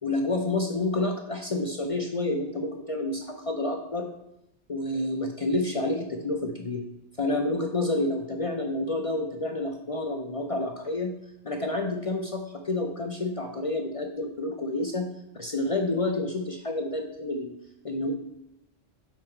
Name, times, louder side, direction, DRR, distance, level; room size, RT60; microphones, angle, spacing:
voice 1, 0.0-4.1 4.7-6.8 7.2-11.2 11.4-15.1 15.4-17.5 17.8-18.1, left 2 dB, 45° left, 3 dB, 0.4 m, -29 dB
5.7 x 4.6 x 4.4 m, 0.84 s
omnidirectional pair, 1.3 m